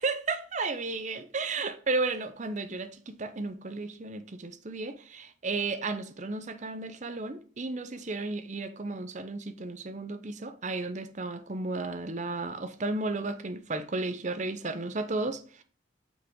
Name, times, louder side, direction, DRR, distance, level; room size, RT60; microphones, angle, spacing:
voice 1, 0.0-15.6, right 3 dB, 40° right, 0.7 m, -33 dB
6.1 x 6.1 x 3.7 m
head